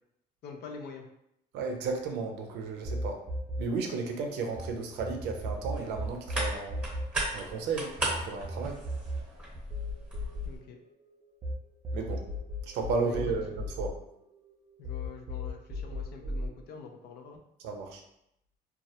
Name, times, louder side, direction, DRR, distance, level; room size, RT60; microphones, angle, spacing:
voice 1, 0.4-1.1 10.4-10.8 13.0-13.3 14.8-17.4, left 5 dB, 70° left, 3 dB, 0.4 m, -45 dB
voice 2, 1.5-3.2 3.6-6.9 7.3-8.8 11.9-12.2 12.6-14.0 17.6-18.0, right 4 dB, 85° right, 3 dB, 0.4 m, -34 dB
sound 1, 2.8-4.7 5.0-11.5 11.8-14.5 14.8-16.5, left 1 dB, 30° right, 0.5 m, -36 dB
sound 2, 5.4-10.6, right 2 dB, 5° right, 0.9 m, -37 dB
2.3 x 2.0 x 2.7 m, 0.79 s
cardioid pair, 110°, 17 cm